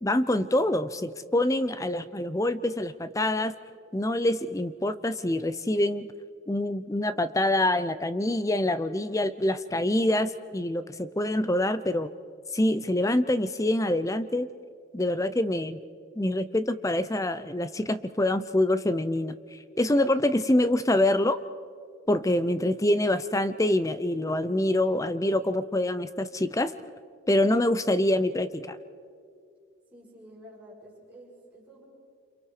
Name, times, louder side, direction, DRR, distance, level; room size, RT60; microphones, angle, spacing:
voice 1, 0.0-3.5 3.9-6.1 6.5-12.1 12.5-14.5 14.9-15.8 16.2-19.3 19.8-21.4 22.1-26.7 27.3-28.8, left 1 dB, 15° left, 13 dB, 0.6 m, -25 dB
voice 2, 29.9-31.9, equal, 5° right, -6 dB, 6.4 m, -50 dB
28.0 x 27.0 x 4.9 m, 2.3 s
head